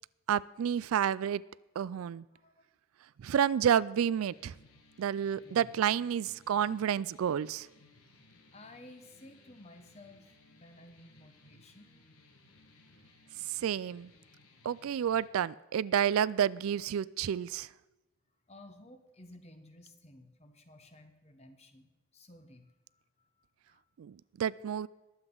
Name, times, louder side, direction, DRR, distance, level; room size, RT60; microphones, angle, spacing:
voice 1, 0.3-1.4 1.8-2.2 3.2-4.5 5.0-7.7 13.5-14.1 14.6-17.7 24.0-24.9, right 9 dB, 70° right, 19 dB, 0.3 m, -30 dB
voice 2, 2.3-2.6 5.4-5.7 6.3-6.4 8.5-11.9 18.5-23.8, left 1 dB, 30° left, 7 dB, 1.0 m, -55 dB
sound 1, 4.1-15.3, left 2 dB, 80° left, 1.6 m, -61 dB
21.0 x 7.9 x 3.9 m, 1.1 s
head